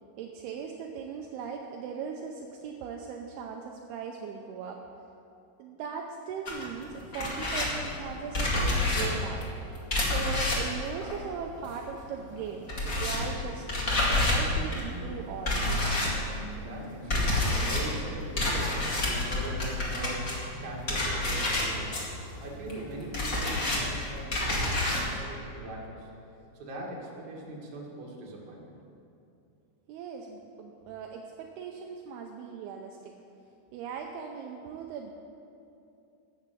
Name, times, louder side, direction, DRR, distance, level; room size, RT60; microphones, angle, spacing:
voice 1, 0.2-4.8 5.6-9.5 10.0-12.7 13.0-13.7 14.1-15.8 29.9-33.1 33.7-35.1, right 6 dB, 80° right, 2 dB, 2.4 m, -39 dB
sound 1, 6.5-12.0 12.2-25.1, left 1 dB, 40° left, 1.1 m, -29 dB
voice 2, 16.5-22.1 22.4-26.1 26.6-28.6, right 1 dB, 50° right, -3 dB, 2.7 m, -41 dB
13.0 x 6.9 x 8.2 m, 2.7 s
omnidirectional pair, 5.2 m